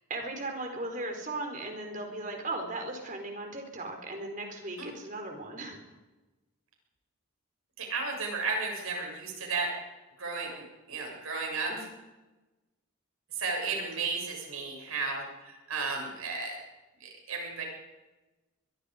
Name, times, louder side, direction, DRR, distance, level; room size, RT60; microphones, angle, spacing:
voice 1, 0.1-5.8 11.7-11.9 13.7-13.8, right 2 dB, 35° right, 3 dB, 4.3 m, -37 dB
voice 2, 7.8-9.7 10.2-11.9 13.4-16.6 17.0-17.6, right 4 dB, 70° right, 0 dB, 7.3 m, -34 dB
24.0 x 22.5 x 5.2 m, 1.1 s
head